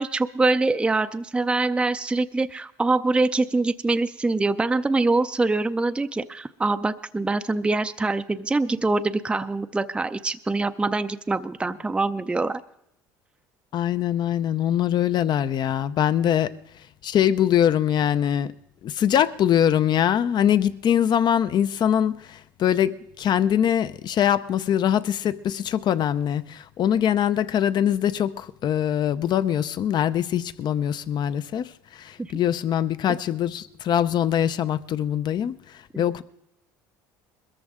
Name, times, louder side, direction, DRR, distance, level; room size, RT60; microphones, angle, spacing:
voice 1, 0.0-12.6 32.2-32.3 35.9-36.1, right 3 dB, 10° right, 0.5 m, -24 dB
voice 2, 13.7-16.5 17.0-18.5 18.8-36.2, left 10 dB, 45° left, 0.6 m, -23 dB
21.0 x 14.0 x 3.6 m
supercardioid pair, 90°, 10 cm